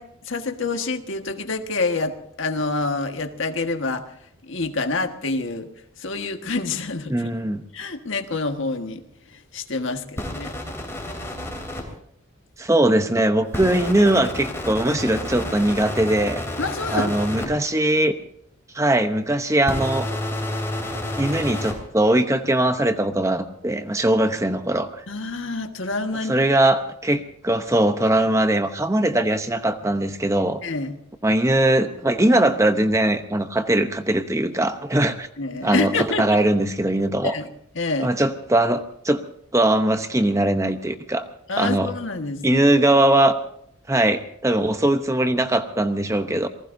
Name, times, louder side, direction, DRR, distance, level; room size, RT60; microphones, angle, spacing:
voice 1, 0.0-4.1 4.5-5.7 6.0-7.3 7.7-9.0 9.3-10.5 16.6-17.1 17.4-17.6 25.1-26.4 30.6-30.9 35.4-36.3 37.2-37.5 37.7-38.1 41.5-42.6, left 3 dB, 65° left, 6 dB, 1.5 m, -27 dB
voice 2, 7.1-7.6 12.6-16.4 16.9-18.2 18.7-20.1 21.2-24.9 26.1-30.6 31.2-35.3 35.6-37.3 38.0-39.2 39.5-41.2 41.6-41.9 42.4-43.4 43.9-46.5, right 1 dB, 15° right, 8 dB, 0.8 m, -20 dB
sound 1, 10.2-11.8 13.5-17.5 19.6-21.8, left 1 dB, 10° left, 3.4 m, -30 dB
27.5 x 19.5 x 2.7 m, 0.71 s
head